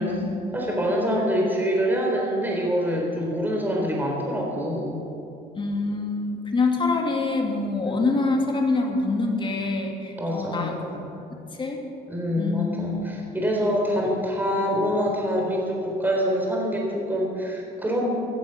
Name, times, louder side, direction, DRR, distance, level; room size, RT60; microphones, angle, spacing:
voice 1, 0.0-0.5 5.5-11.0 11.5-11.8 12.4-13.1, left 3 dB, 30° left, 2 dB, 2.5 m, -26 dB
voice 2, 0.5-5.0 7.9-8.0 10.2-10.7 12.1-18.1, equal, 10° right, -1 dB, 4.0 m, -25 dB
16.5 x 11.5 x 6.7 m, 2.9 s
cardioid pair, 110°, 17 cm